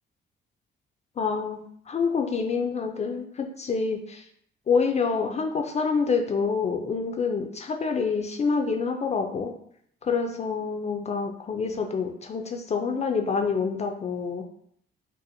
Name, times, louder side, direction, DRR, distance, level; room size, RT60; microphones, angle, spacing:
voice 1, 1.2-1.6 1.9-4.2 4.7-9.5 10.0-14.4, left 5 dB, 35° left, 4 dB, 0.4 m, -27 dB
4.1 x 2.2 x 2.6 m, 0.67 s
cardioid pair, 90°, 20 cm